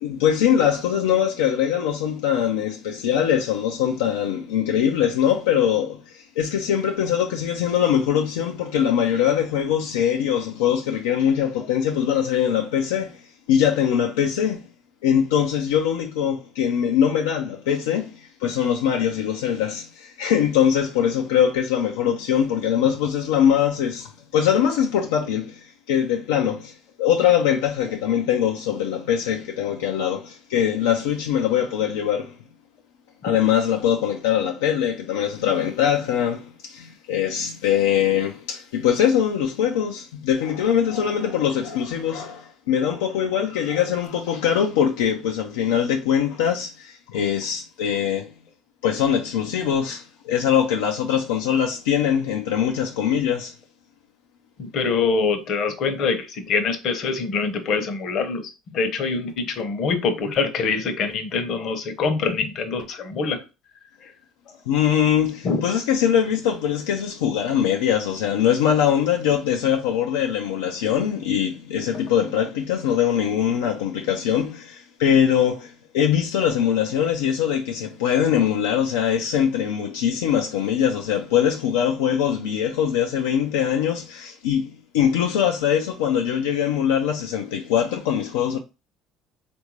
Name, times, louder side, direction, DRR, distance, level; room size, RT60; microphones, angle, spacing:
voice 1, 0.0-14.7 15.0-32.3 33.2-48.3 48.8-53.5 64.7-88.6, left 9 dB, 85° left, 0.4 m, -22 dB
voice 2, 54.6-63.4 65.4-65.7, left 4 dB, 55° left, 0.8 m, -24 dB
3.4 x 2.6 x 3.0 m
supercardioid pair, 80°, 0 cm